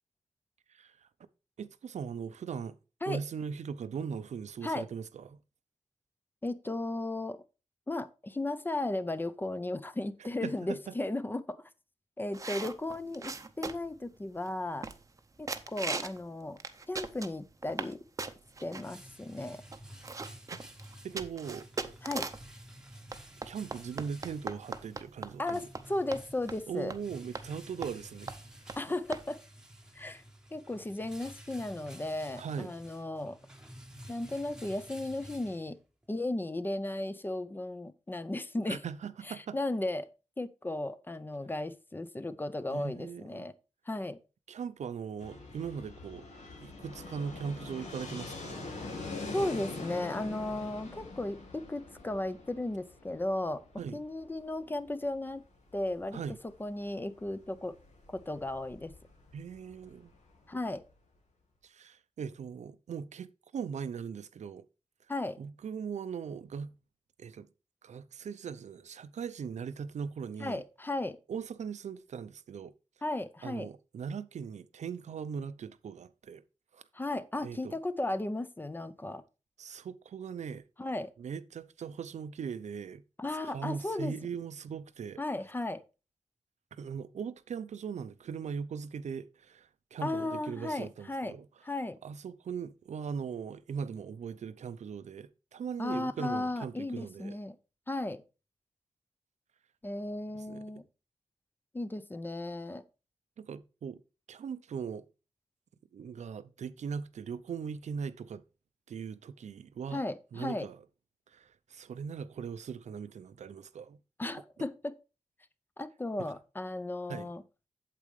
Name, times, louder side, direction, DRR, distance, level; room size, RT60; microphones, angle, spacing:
voice 1, 0.7-1.1 1.6-2.8 3.1-5.4 10.2-10.9 20.5-20.6 21.0-21.6 23.5-25.7 26.7-28.4 28.6-28.8 32.4-32.7 38.7-39.6 42.7-43.5 44.5-46.3 46.6-48.7 53.8-54.0 56.1-56.4 59.3-60.1 61.6-63.3 63.5-64.6 65.4-66.7 67.2-67.5 67.8-70.6 71.3-72.7 73.4-76.4 76.7-76.8 77.4-77.8 79.6-80.6 81.2-83.0 83.4-85.2 86.7-91.5 92.0-97.4 100.3-100.6 103.4-104.0 104.3-105.1 105.9-108.4 108.9-110.0 110.3-110.8 111.3-114.0 116.2-116.3 117.1-117.3, right 6 dB, 90° right, 0.6 m, -40 dB
voice 2, 6.4-7.4 7.9-11.6 12.2-14.9 15.4-16.6 16.9-18.0 18.6-19.6 22.0-22.3 25.4-26.9 28.8-29.4 29.9-30.2 30.5-33.4 34.1-35.8 36.1-38.8 39.5-40.1 40.4-43.5 43.9-44.2 49.3-53.6 53.9-55.4 55.7-56.2 56.6-57.7 58.1-58.9 60.5-60.8 65.1-65.4 70.4-71.2 73.0-73.7 76.9-79.2 80.8-81.1 83.2-84.1 85.2-85.8 90.0-91.4 91.6-92.0 95.8-97.6 97.9-98.2 99.8-100.8 101.7-102.8 109.9-110.7 114.2-115.0 115.8-117.4, left 2 dB, 15° left, 0.5 m, -35 dB
sound 1, 12.3-14.0 14.5-14.6 14.8-15.2 15.5-16.2 16.6-17.9 18.2-18.8 19.4-19.5 19.7-22.5 23.1-25.8 26.1-26.2 26.5-26.6 26.9-27.0 27.3-27.5 27.8-28.0 28.3-28.4 28.7-28.8 29.1-29.2, right 3 dB, 30° right, 0.6 m, -39 dB
sound 2, 18.3-36.1, right 1 dB, 5° right, 1.0 m, -52 dB
Fixed-wing aircraft airplane, 45.2-60.9, left 3 dB, 85° left, 2.3 m, -45 dB
8.6 x 7.6 x 3.2 m
wide cardioid pair, 165°, 12 cm